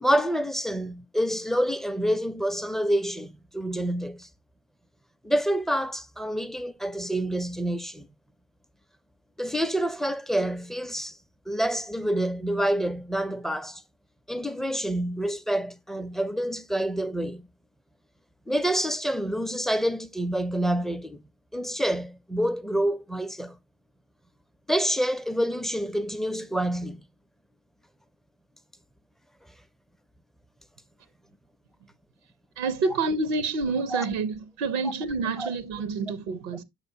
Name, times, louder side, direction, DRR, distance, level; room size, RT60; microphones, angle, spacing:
voice 1, 0.0-4.3 5.2-8.1 9.4-11.2 11.5-13.8 14.3-17.4 18.5-21.2 21.5-23.6 24.7-27.0 33.9-34.0 35.4-35.5, right 1 dB, ahead, 0.4 m, -27 dB
voice 2, 32.6-36.6, right 4 dB, 70° right, 0.7 m, -28 dB
6.4 x 6.0 x 2.6 m
figure-of-eight pair, 40°, 41 cm